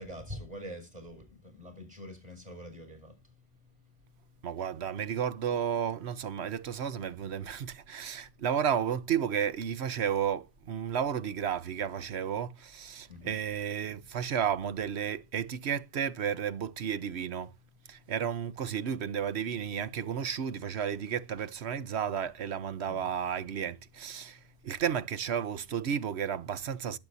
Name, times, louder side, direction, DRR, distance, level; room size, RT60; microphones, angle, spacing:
voice 1, 0.0-3.1 13.1-13.4 22.9-23.1, equal, 40° right, 6.7 m, -44 dB
voice 2, 4.4-17.5 17.9-24.4 24.6-27.0, right 8 dB, 85° right, 1.2 m, -32 dB
20.0 x 8.9 x 2.7 m
omnidirectional pair, 1.1 m